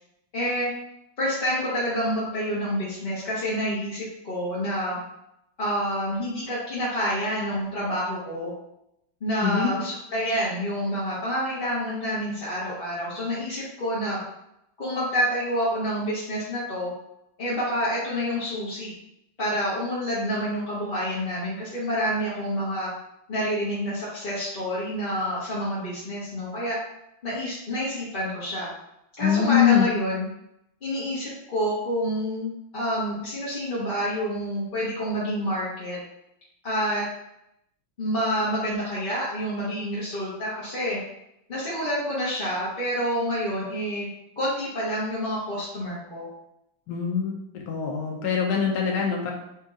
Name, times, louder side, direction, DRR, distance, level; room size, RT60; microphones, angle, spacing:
voice 1, 0.3-0.7 1.2-5.0 5.6-8.5 9.2-14.2 14.8-16.9 17.4-18.9 19.4-22.9 23.3-26.8 27.2-28.7 29.2-30.3 30.8-36.0 36.6-37.1 38.0-41.0 41.5-44.1 44.4-46.3, equal, 35° left, -9 dB, 0.9 m, -28 dB
voice 2, 29.2-29.9 46.9-49.3, left 8 dB, 70° left, -1 dB, 1.1 m, -23 dB
4.3 x 2.8 x 3.7 m, 0.81 s
omnidirectional pair, 2.1 m